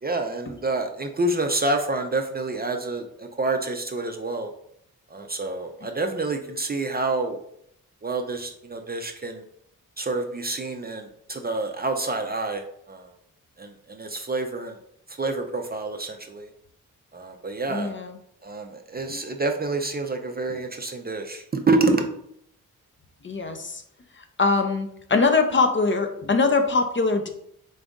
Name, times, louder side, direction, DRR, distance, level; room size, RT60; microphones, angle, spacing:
voice 1, 0.0-4.5 5.1-7.4 8.0-9.4 10.0-12.6 12.9-13.1 13.6-14.8 15.2-16.5 17.1-17.9 18.4-22.1, right 2 dB, 25° right, 4 dB, 0.5 m, -27 dB
voice 2, 17.7-18.2 19.1-19.2 23.2-23.8 24.4-27.3, left 4 dB, 30° left, 6 dB, 0.6 m, -22 dB
3.9 x 2.5 x 3.6 m, 0.72 s
cardioid pair, 55°, 37 cm